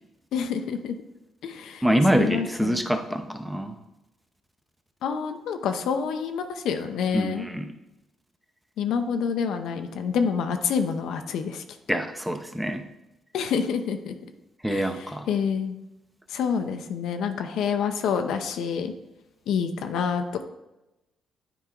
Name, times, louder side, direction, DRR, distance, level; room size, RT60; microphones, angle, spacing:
voice 1, 0.3-1.0 1.4-1.9 2.1-2.8 5.0-7.5 8.8-12.0 13.3-14.1 14.7-15.8 16.3-18.9 19.5-20.4, left 6 dB, 80° left, 7 dB, 0.6 m, -28 dB
voice 2, 1.8-3.8 7.1-7.7 11.9-12.8 14.6-15.2, equal, 5° right, 6 dB, 0.7 m, -25 dB
9.2 x 4.7 x 3.8 m, 0.96 s
cardioid pair, 90°, 0 cm